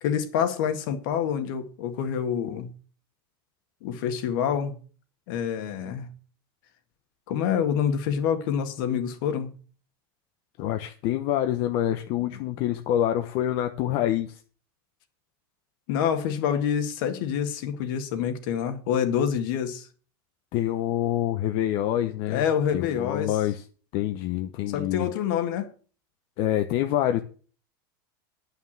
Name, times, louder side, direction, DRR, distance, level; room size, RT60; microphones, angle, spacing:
voice 1, 0.0-2.7 3.8-4.7 5.3-6.1 7.3-9.5 15.9-19.9 22.3-23.4 24.7-25.7, left 8 dB, 65° left, 1.9 m, -27 dB
voice 2, 10.6-14.4 20.5-22.4 22.7-23.6 23.9-25.1 26.4-27.2, left 12 dB, 50° left, 0.8 m, -26 dB
9.6 x 5.9 x 7.4 m
supercardioid pair, 150°, 12 cm